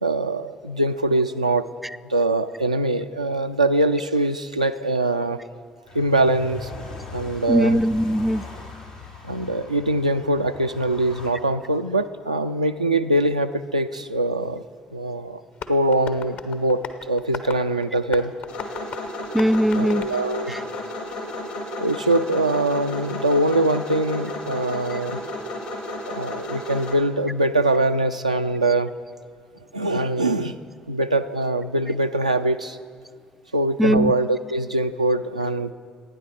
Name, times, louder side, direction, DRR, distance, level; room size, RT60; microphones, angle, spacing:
voice 1, 0.0-1.7 2.0-5.4 5.9-6.7 7.1-7.8 9.2-14.6 14.9-15.4 15.7-18.3 19.8-20.6 21.8-25.2 26.1-28.9 29.7-30.6 30.9-32.8 33.5-35.7, right 1 dB, 90° right, 7 dB, 0.3 m, -23 dB
sound 1, 5.9-11.3, left 3 dB, 90° left, 2.2 m, -40 dB
voice 2, 7.5-8.4 19.3-20.1 20.5-20.6 33.8-34.1, equal, 5° right, 14 dB, 0.3 m, -20 dB
Tap, 15.5-21.0, left 6 dB, 55° left, 0.9 m, -38 dB
sound 2, 18.5-26.9, left 1 dB, 70° left, 2.3 m, -33 dB
27.0 x 9.5 x 4.4 m, 2.1 s
figure-of-eight pair, 50°, 4 cm